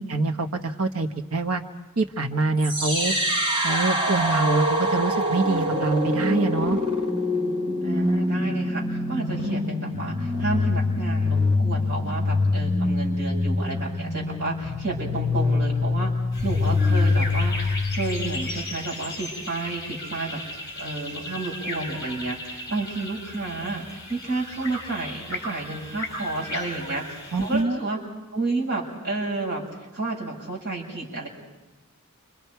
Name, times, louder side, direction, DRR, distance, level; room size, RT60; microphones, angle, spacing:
voice 1, 0.1-1.6 2.0-3.1 3.6-6.8 27.3-27.8, right 3 dB, 75° right, 6 dB, 1.3 m, -25 dB
sound 1, 2.6-18.6, left 2 dB, 25° right, 2.0 m, -25 dB
voice 2, 7.8-16.1 16.4-17.5 17.9-20.4 20.8-28.0 28.3-29.6 29.9-31.3, right 3 dB, 50° right, -3 dB, 6.4 m, -31 dB
sound 2, 16.3-27.6, left 1 dB, 20° left, 5.3 m, -36 dB
29.5 x 26.5 x 4.6 m, 1.1 s
head